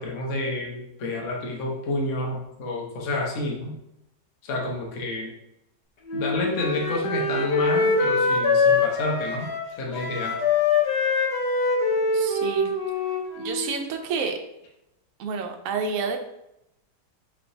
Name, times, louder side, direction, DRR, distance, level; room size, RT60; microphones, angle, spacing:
voice 1, 0.0-3.8 4.4-5.3 6.1-9.5 9.8-10.3, left 2 dB, 55° left, -2 dB, 1.0 m, -29 dB
Wind instrument woodwind instrument, 6.1-13.8, left 4 dB, 75° left, 1.4 m, -24 dB
voice 2, 12.1-12.7 13.4-14.4 15.2-16.2, right 5 dB, 70° right, 4 dB, 0.8 m, -28 dB
5.0 x 3.3 x 2.6 m, 0.86 s
omnidirectional pair, 1.9 m